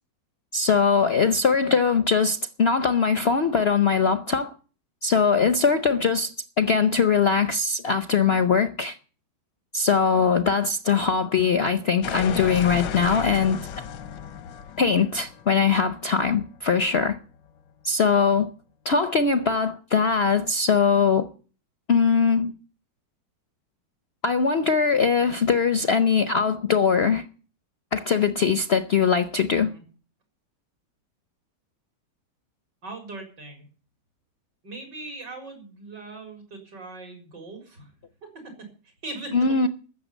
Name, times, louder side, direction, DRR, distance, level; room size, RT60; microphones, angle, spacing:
voice 1, 0.5-4.5 5.0-9.0 9.7-13.6 14.8-17.2 17.8-18.5 18.8-21.3 21.9-22.5 24.2-27.2 27.9-29.7 39.3-39.7, left 5 dB, 55° left, 0.7 m, -21 dB
sound 1, 12.0-16.8, left 8 dB, 85° left, 1.6 m, -34 dB
voice 2, 32.8-33.7 34.6-37.9 38.4-39.7, right 2 dB, 75° right, 4.9 m, -40 dB
14.5 x 6.9 x 9.1 m
omnidirectional pair, 1.9 m